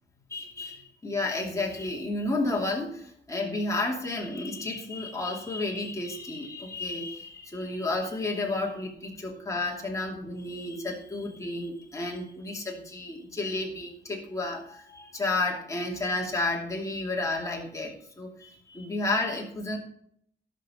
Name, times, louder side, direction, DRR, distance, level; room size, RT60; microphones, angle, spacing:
voice 1, 0.3-19.8, left 2 dB, 15° left, -1 dB, 2.7 m, -31 dB
16.5 x 6.9 x 4.4 m, 0.67 s
wide cardioid pair, 175°, 19 cm